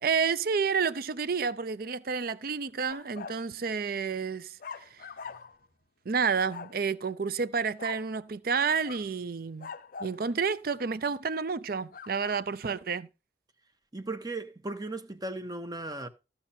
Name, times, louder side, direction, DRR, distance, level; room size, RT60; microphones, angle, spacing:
voice 1, 0.0-5.1 6.1-9.7 10.0-13.1, right 5 dB, 55° right, 0.5 m, -30 dB
sound 1, 2.9-3.4 4.6-5.7 6.5-6.8 7.8-8.1 8.5-9.1 9.6-10.2 11.9-12.4, left 5 dB, 50° left, 0.5 m, -43 dB
voice 2, 13.9-16.1, right 2 dB, 20° right, 1.1 m, -36 dB
14.5 x 6.5 x 4.3 m
head